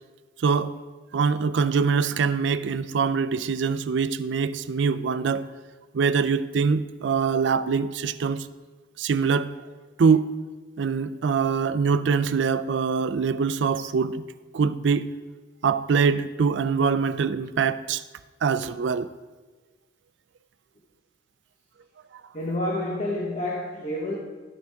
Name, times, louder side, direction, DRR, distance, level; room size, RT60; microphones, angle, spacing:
voice 1, 0.4-0.7 1.1-5.5 5.9-8.5 9.0-9.5 10.0-10.3 10.8-14.2 14.5-15.1 15.6-18.0 18.4-19.1, right 5 dB, 65° right, 0.4 m, -23 dB
voice 2, 22.3-24.2, left 1 dB, 35° left, 1.1 m, -28 dB
12.0 x 6.8 x 3.5 m
head